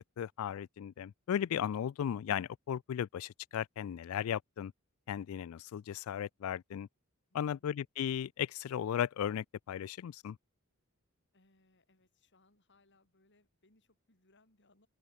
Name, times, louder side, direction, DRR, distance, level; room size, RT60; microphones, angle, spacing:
voice 1, 0.2-4.7 5.1-6.9 7.3-10.4, left 9 dB, 75° left, 0.3 m, -36 dB
voice 2, 11.3-14.9, left 2 dB, 55° left, 6.2 m, -70 dB
open air
head